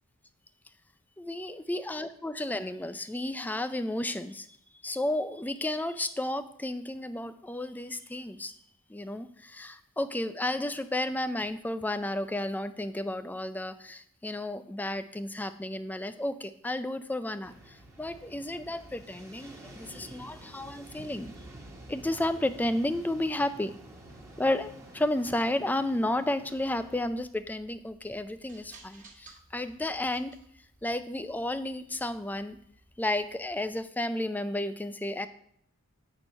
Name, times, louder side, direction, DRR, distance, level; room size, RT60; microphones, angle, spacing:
voice 1, 1.2-8.5 8.9-21.3 21.9-23.7 24.4-32.6 33.0-35.3, left 1 dB, 10° left, 11 dB, 0.3 m, -32 dB
sound 1, 17.4-27.1, right 1 dB, 15° right, 1.2 m, -49 dB
sound 2, 26.4-33.8, right 3 dB, 35° right, 1.4 m, -58 dB
8.8 x 4.5 x 5.3 m, 0.69 s
head